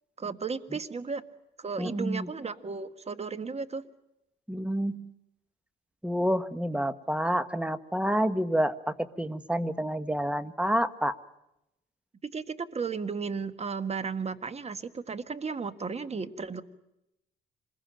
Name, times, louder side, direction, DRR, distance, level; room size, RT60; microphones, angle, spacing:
voice 1, 0.2-1.2 1.6-3.8 12.2-16.6, right 5 dB, 30° right, 11 dB, 1.7 m, -34 dB
voice 2, 1.8-2.3 4.5-5.1 6.0-11.2, equal, 5° right, 12 dB, 1.3 m, -28 dB
26.5 x 21.5 x 9.0 m, 0.87 s
cardioid pair, 90°, 20 cm